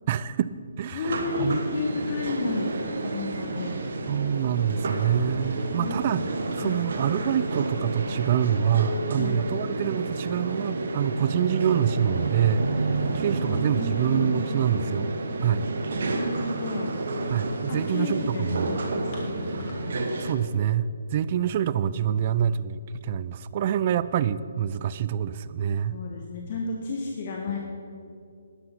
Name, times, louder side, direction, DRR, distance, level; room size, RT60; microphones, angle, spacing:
voice 1, 0.1-0.5 0.8-1.6 4.1-6.3 6.6-15.7 17.3-18.8 20.2-20.9 21.1-26.0, right 9 dB, 40° right, 16 dB, 0.4 m, -26 dB
voice 2, 0.9-3.8 5.8-6.0 6.6-6.8 9.1-9.4 13.0-15.1 16.1-17.0 17.7-20.0 25.9-27.6, left 3 dB, 45° left, 0 dB, 1.4 m, -32 dB
sound 1, 1.0-20.3, right 2 dB, 60° right, 1.4 m, -30 dB
11.5 x 11.5 x 5.7 m, 2.5 s
figure-of-eight pair, 140°, 0 cm